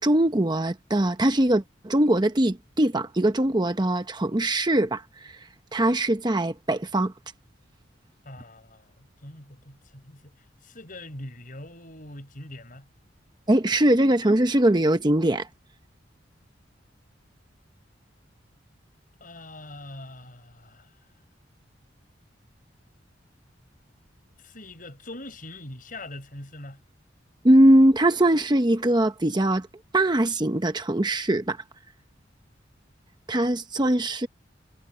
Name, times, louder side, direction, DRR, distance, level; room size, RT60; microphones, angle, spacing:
voice 1, 0.0-5.3 5.7-7.1 13.5-15.5 27.4-29.7 29.9-31.6 33.3-34.3, right 1 dB, 25° right, 0.9 m, -21 dB
voice 2, 8.2-10.3 10.6-12.9 19.2-21.0 24.4-26.8, left 1 dB, 45° left, 7.4 m, -42 dB
head